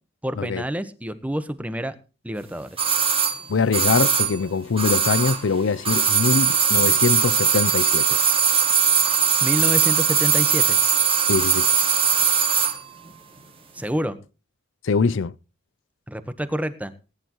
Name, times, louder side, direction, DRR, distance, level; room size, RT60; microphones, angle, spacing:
voice 1, 0.2-1.9 2.2-2.8 9.4-10.8 13.7-14.2 16.1-16.9, equal, 5° right, 1.1 m, -28 dB
sound 1, 2.8-5.5 5.8-12.8 13.1-13.2, right 7 dB, 30° right, 2.4 m, -20 dB
voice 2, 3.5-8.2 11.3-11.7 14.8-15.3, left 5 dB, 70° left, 0.5 m, -23 dB
19.5 x 10.5 x 3.0 m
head